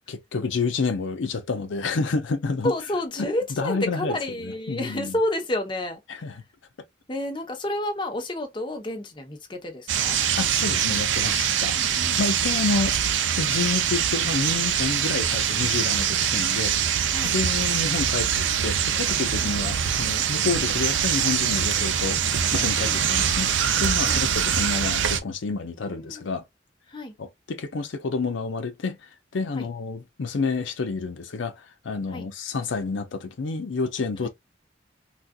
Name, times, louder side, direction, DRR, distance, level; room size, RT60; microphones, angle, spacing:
voice 1, 0.1-2.7 3.6-4.2 4.4-5.2 6.1-6.3 10.4-11.8 12.2-13.0 13.4-17.0 17.2-22.2 22.5-23.5 23.8-26.4 27.2-34.3, left 4 dB, 85° left, 0.5 m, -29 dB
voice 2, 2.6-6.2 7.1-10.2 11.7-12.2 12.5-12.7 17.1-17.4 19.4-19.6 22.8-23.0 24.0-24.2 25.8-26.3 26.9-27.1 29.6-29.7 32.1-32.3 34.2-34.3, left 1 dB, 25° left, 0.8 m, -30 dB
sound 1, 9.9-25.2, right 8 dB, 85° right, 0.5 m, -24 dB
3.9 x 2.4 x 2.2 m
head